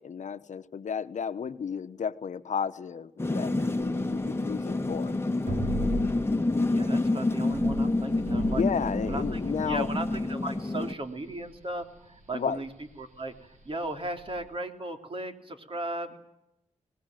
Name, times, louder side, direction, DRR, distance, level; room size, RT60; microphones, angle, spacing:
voice 1, 0.0-5.1 8.5-9.9 12.3-12.6, left 7 dB, 75° left, 12 dB, 1.0 m, -33 dB
sound 1, 3.2-10.9, left 2 dB, 20° left, 1.4 m, -28 dB
sound 2, 3.6-14.4, right 1 dB, 85° right, 4.7 m, -38 dB
voice 2, 6.7-8.6 9.1-9.4 9.7-12.7 13.0-16.2, right 1 dB, 45° right, 5 dB, 3.4 m, -36 dB
22.5 x 20.0 x 9.1 m, 0.86 s
wide cardioid pair, 80°, 12 cm